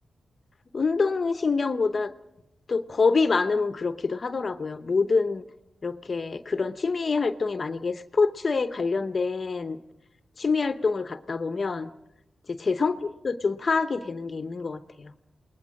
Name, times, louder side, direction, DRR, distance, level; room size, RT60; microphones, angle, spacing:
voice 1, 0.7-2.1 2.7-5.4 5.8-9.8 10.4-11.9 12.5-13.0 13.2-15.1, left 4 dB, 40° left, 10 dB, 0.8 m, -26 dB
29.0 x 20.0 x 6.4 m, 0.87 s
wide cardioid pair, 100°, 0 cm